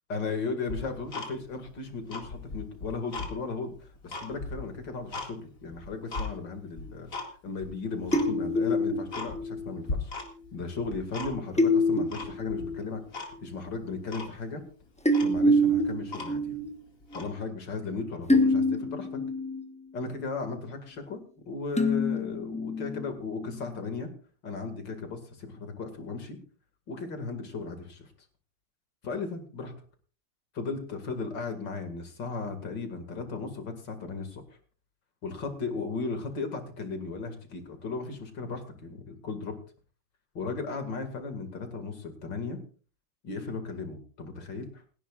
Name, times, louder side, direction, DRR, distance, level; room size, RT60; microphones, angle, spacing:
voice 1, 0.1-7.1 7.4-10.1 10.5-14.6 15.2-16.6 17.1-19.2 19.9-21.2 21.5-24.1 24.4-26.4 26.9-28.1 29.0-29.7 30.5-34.4 35.2-39.6 40.3-42.6 43.2-44.8, left 4 dB, 55° left, 7 dB, 2.8 m, -36 dB
Tick-tock, 0.7-1.7 2.0-3.3 3.8-5.3 5.7-6.3 6.8-7.3 7.6-7.7 8.1-8.3 8.7-8.8 9.1-9.6 9.9-10.5 10.8-11.6 12.1-12.7 13.1-13.3 13.7-13.8 14.1-14.3 14.8-14.9 15.1-16.6 17.1-17.3, left 3 dB, 40° left, 2.6 m, -37 dB
sound 1, 8.1-9.8 11.6-12.8 13.4-13.5 15.1-16.7 17.1-17.2 18.3-19.6 21.8-23.0, left 1 dB, 5° left, 0.5 m, -26 dB
28.5 x 11.0 x 2.4 m, 0.37 s
omnidirectional pair, 2.3 m